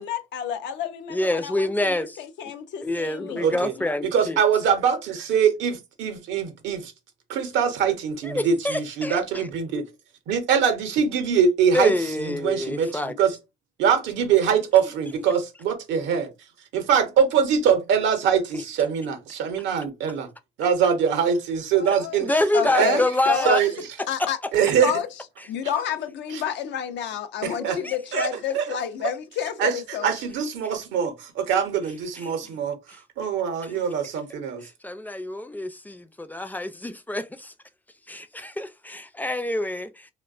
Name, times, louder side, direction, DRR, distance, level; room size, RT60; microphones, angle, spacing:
voice 1, 0.0-4.1 21.7-22.2 22.5-23.5 24.1-24.4 24.8-25.1 25.5-30.2, left 9 dB, 75° left, 0.4 m, -30 dB
voice 2, 1.1-2.2 2.8-4.4 8.2-9.2 11.7-13.1 18.5-18.6 22.2-23.6 27.8-28.3 32.2-32.3 33.6-33.7 34.8-37.5 38.1-40.1, left 1 dB, 10° left, 0.4 m, -27 dB
voice 3, 3.4-3.7 4.1-6.9 7.3-9.9 10.3-13.4 13.8-16.3 16.7-20.3 20.6-22.3 22.7-23.0 23.4-23.7 24.5-24.9 26.3-26.4 27.4-27.8 28.1-28.3 28.5-28.8 29.6-32.8 33.2-34.6, right 7 dB, 85° right, 0.6 m, -23 dB
2.5 x 2.1 x 2.4 m
supercardioid pair, 55°, 19 cm